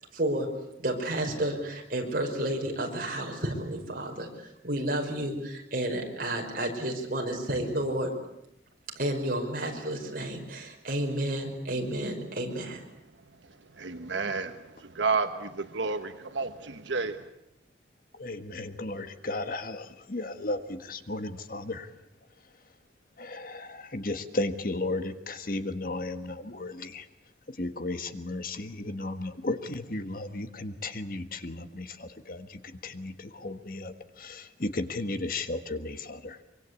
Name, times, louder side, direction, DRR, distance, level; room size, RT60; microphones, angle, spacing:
voice 1, 0.1-0.5 0.8-4.3 4.6-8.1 9.0-12.8, right 1 dB, 50° right, 1 dB, 5.5 m, -31 dB
voice 2, 13.8-17.3, right 4 dB, 75° right, 9 dB, 1.2 m, -31 dB
voice 3, 18.1-21.9 23.2-27.1 27.5-36.4, left 2 dB, 50° left, 9 dB, 1.5 m, -35 dB
24.5 x 24.5 x 8.4 m, 0.83 s
head